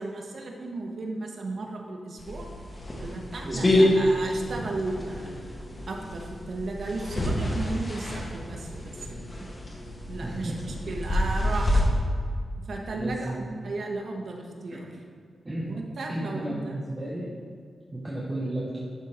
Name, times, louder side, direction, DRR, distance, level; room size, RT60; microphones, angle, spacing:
voice 1, 0.0-2.5 3.0-5.3 5.9-9.5 10.0-10.5 10.9-11.9 12.7-14.9 15.7-16.8, right 2 dB, 60° right, 1 dB, 1.0 m, -35 dB
sound 1, 2.2-11.8, left 1 dB, 25° left, 1.3 m, -28 dB
voice 2, 3.4-3.9 4.5-4.7 10.2-10.9 12.9-13.4 14.7-14.8 15.4-15.7 16.1-17.3 17.9-18.8, right 1 dB, 15° right, -7 dB, 1.1 m, -33 dB
11.0 x 3.8 x 4.3 m, 2.1 s
wide cardioid pair, 135°, 0 cm